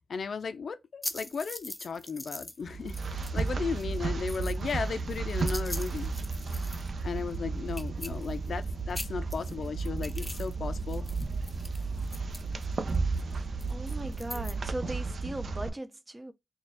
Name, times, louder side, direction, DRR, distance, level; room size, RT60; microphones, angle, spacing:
voice 1, 0.1-6.1 7.0-11.1, left 5 dB, 75° left, 0.5 m, -35 dB
sound 1, 1.0-2.6 2.9-3.5 3.8-7.0 7.3-7.4 7.7-8.6 8.9-10.5 10.8-14.5, left 1 dB, 20° left, 0.6 m, -42 dB
sound 2, 2.6-15.7, right 4 dB, 70° right, 0.6 m, -33 dB
voice 2, 13.7-16.3, right 1 dB, 25° right, 0.5 m, -38 dB
4.2 x 2.4 x 3.5 m
cardioid pair, 55°, 0 cm